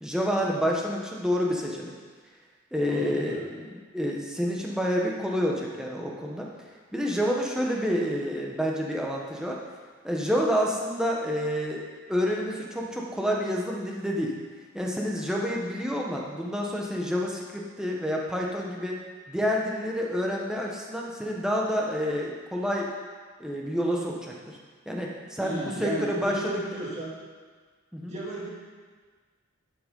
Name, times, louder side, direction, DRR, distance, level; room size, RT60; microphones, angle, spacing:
voice 1, 0.0-1.9 2.7-6.5 6.9-9.6 10.0-11.8 12.1-14.3 14.7-19.0 19.3-22.9 23.4-24.6 24.9-26.6 27.9-28.1, equal, 5° right, -2 dB, 1.1 m, -28 dB
voice 2, 2.8-3.4 25.4-27.1 28.1-28.5, right 2 dB, 30° right, -6 dB, 2.4 m, -34 dB
11.5 x 5.8 x 5.4 m, 1.5 s
head